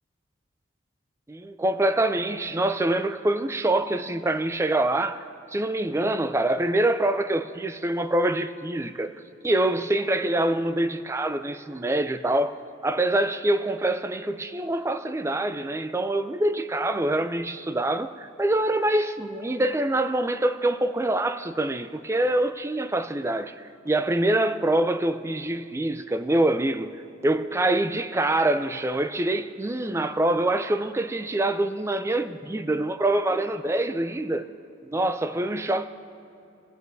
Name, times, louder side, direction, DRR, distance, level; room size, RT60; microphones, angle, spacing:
voice 1, 1.3-5.3 5.5-9.1 9.4-23.5 23.9-26.9 27.2-34.5 34.9-35.8, right 1 dB, 15° right, 0.3 m, -25 dB
26.0 x 9.3 x 2.7 m
head